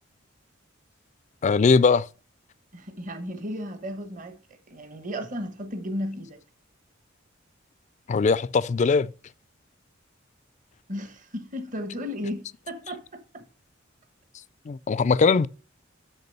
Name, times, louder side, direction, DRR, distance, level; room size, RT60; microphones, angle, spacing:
voice 1, 1.4-2.1 8.1-9.1 14.7-15.5, left 4 dB, 35° left, 0.3 m, -20 dB
voice 2, 2.7-6.4 10.9-13.4, equal, 40° right, 1.1 m, -34 dB
6.7 x 6.1 x 6.7 m
head